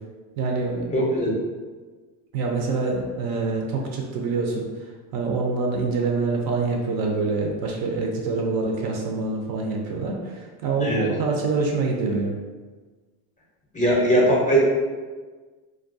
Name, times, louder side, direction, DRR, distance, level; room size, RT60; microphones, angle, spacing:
voice 1, 0.4-1.0 2.3-4.7 5.1-12.3, right 3 dB, 55° right, 1 dB, 0.5 m, -25 dB
voice 2, 0.9-1.3 10.8-11.1 13.7-14.6, equal, 15° left, -5 dB, 0.5 m, -20 dB
2.3 x 2.2 x 2.5 m, 1.4 s
cardioid pair, 120°, 44 cm